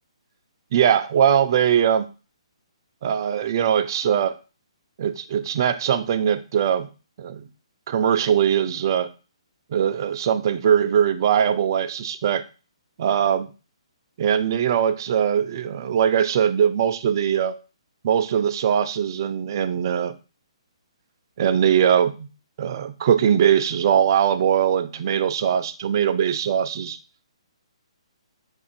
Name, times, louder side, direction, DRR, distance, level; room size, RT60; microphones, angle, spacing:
voice 1, 0.7-2.1 3.0-4.3 5.0-6.9 7.2-7.5 7.9-9.1 9.7-12.4 13.0-13.5 14.2-17.5 18.0-20.1 21.4-22.3 22.6-27.0, right 8 dB, 40° right, 11 dB, 0.4 m, -21 dB
4.6 x 2.6 x 2.4 m, 0.34 s
figure-of-eight pair, 130°, 3 cm